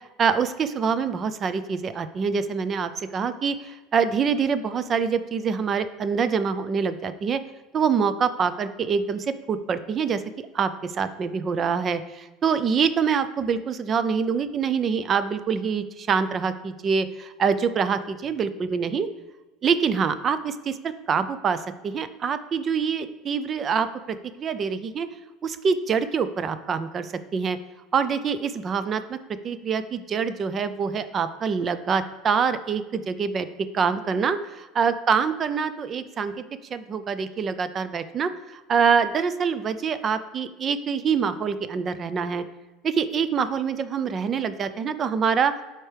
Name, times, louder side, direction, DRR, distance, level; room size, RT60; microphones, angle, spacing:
voice 1, 0.2-7.4 7.7-19.1 19.6-25.1 25.4-27.6 27.9-29.2 29.4-33.5 33.7-36.3 36.7-42.4 42.8-45.5, right 6 dB, 35° right, 12 dB, 0.5 m, -25 dB
11.5 x 4.4 x 3.3 m, 1.2 s
supercardioid pair, 110°, 0 cm